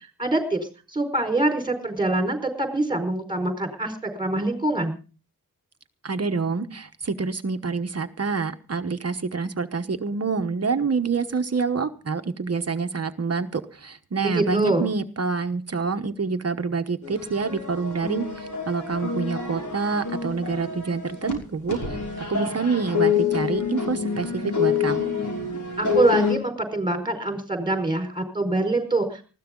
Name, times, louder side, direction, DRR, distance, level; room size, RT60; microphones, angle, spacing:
voice 1, 0.2-5.0 14.2-14.9 25.8-29.2, right 2 dB, 15° right, 5 dB, 4.7 m, -24 dB
voice 2, 6.0-22.0 22.3-25.2, right 4 dB, 45° right, 7 dB, 1.1 m, -27 dB
sound 1, 17.0-21.3 21.7-26.4, left 7 dB, 60° left, 5.9 m, -27 dB
20.0 x 15.5 x 3.8 m, 0.36 s
wide cardioid pair, 120°, 34 cm